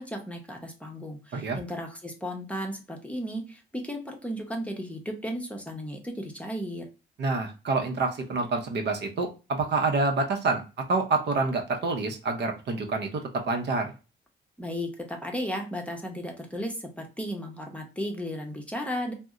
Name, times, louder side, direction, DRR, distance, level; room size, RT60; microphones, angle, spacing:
voice 1, 0.0-6.9 14.6-19.1, equal, 5° left, 1 dB, 0.7 m, -35 dB
voice 2, 7.2-10.6 10.9-13.9, right 3 dB, 60° right, 3 dB, 0.7 m, -27 dB
2.7 x 2.1 x 3.5 m, 0.31 s
cardioid pair, 90°, 20 cm